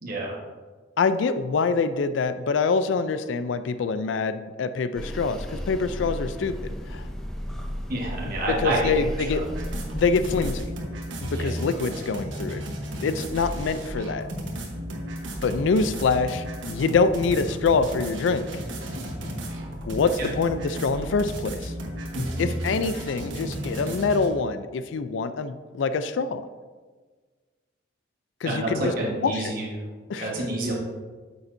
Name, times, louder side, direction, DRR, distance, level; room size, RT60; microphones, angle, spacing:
voice 1, 0.0-0.3 7.9-8.9 9.2-9.4 11.3-11.5 20.2-20.3 22.1-22.5 28.4-29.7 30.2-30.7, right 1 dB, 50° right, -4 dB, 1.4 m, -28 dB
voice 2, 1.0-6.6 6.9-7.1 8.2-8.3 8.6-9.4 9.9-10.6 11.2-12.6 13.0-14.3 15.4-18.5 19.9-21.7 22.4-26.4 28.4-28.9 29.2-29.5 30.1-30.3, left 4 dB, 75° left, 12 dB, 0.4 m, -25 dB
sound 1, 4.9-10.6, equal, ahead, 0.6 m, -34 dB
sound 2, 9.4-24.3, equal, 80° right, 1.2 m, -34 dB
8.5 x 7.0 x 2.6 m, 1.4 s
head